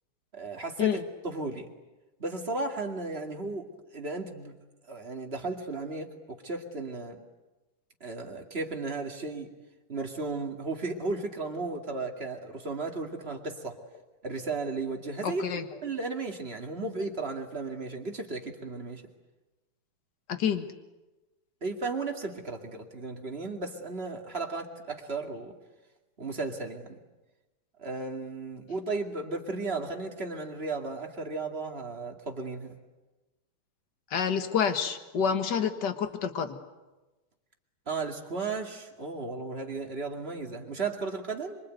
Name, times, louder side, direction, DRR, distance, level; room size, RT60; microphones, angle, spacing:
voice 1, 0.3-1.7 2.2-3.7 3.9-4.5 4.9-7.2 8.0-9.5 9.9-13.8 14.2-15.4 15.8-19.0 21.6-25.5 26.2-27.0 27.8-32.7 37.9-41.6, right 3 dB, 20° right, 2 dB, 2.0 m, -35 dB
voice 2, 15.2-15.6 20.3-20.7 34.1-36.6, left 7 dB, 45° left, 8 dB, 1.5 m, -28 dB
26.0 x 24.0 x 9.2 m, 1.1 s
omnidirectional pair, 3.7 m